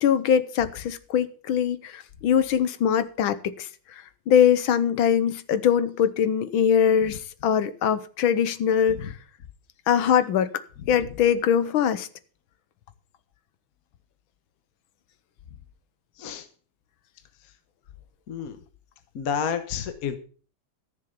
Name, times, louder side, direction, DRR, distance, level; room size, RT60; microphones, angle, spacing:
voice 1, 0.0-3.7 4.3-9.1 9.9-10.5 10.9-12.1, left 8 dB, 75° left, 1.7 m, -22 dB
voice 2, 19.1-20.2, left 7 dB, 50° left, 1.5 m, -30 dB
14.0 x 6.9 x 6.8 m
omnidirectional pair, 2.2 m